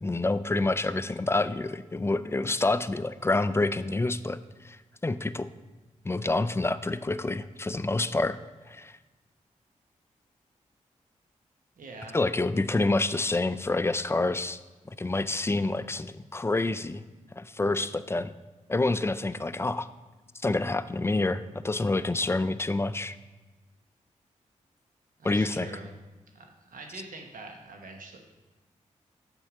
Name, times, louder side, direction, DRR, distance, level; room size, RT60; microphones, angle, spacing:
voice 1, 0.0-4.8 5.0-5.5 6.0-8.4 8.7-9.0 12.1-14.6 14.9-17.0 17.4-18.3 18.7-19.9 20.4-23.2 25.2-25.7, left 2 dB, 20° left, 13 dB, 0.4 m, -27 dB
voice 2, 11.7-12.2 25.2-25.9 26.3-28.2, right 3 dB, 80° right, 3 dB, 1.1 m, -44 dB
7.1 x 4.5 x 4.9 m, 1.2 s
cardioid pair, 45°, 14 cm